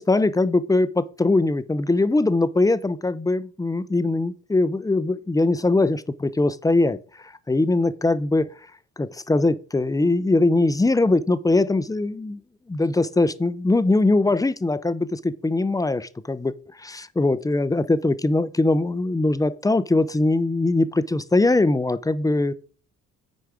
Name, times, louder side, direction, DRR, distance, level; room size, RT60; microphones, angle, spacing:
voice 1, 0.0-7.0 7.2-8.5 9.0-12.4 12.7-16.5 16.8-22.5, left 2 dB, 10° left, 0.5 m, -21 dB
7.9 x 4.5 x 4.9 m
hypercardioid pair, 50°, 38 cm